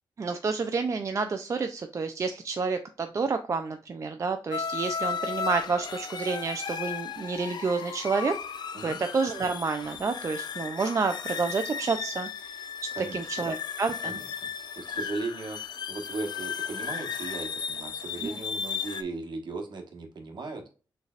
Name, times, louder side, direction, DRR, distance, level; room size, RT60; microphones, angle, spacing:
voice 1, 0.2-8.3 8.8-12.3 12.6-12.7 13.1-14.2 18.2-18.3, right 4 dB, 35° right, 6 dB, 0.4 m, -29 dB
sound 1, 4.5-19.0, left 6 dB, 55° left, 0.4 m, -35 dB
voice 2, 12.9-13.5 14.0-14.3 14.6-20.6, right 3 dB, 60° right, 4 dB, 1.2 m, -37 dB
6.4 x 3.3 x 2.4 m, 0.36 s
wide cardioid pair, 175°, 9 cm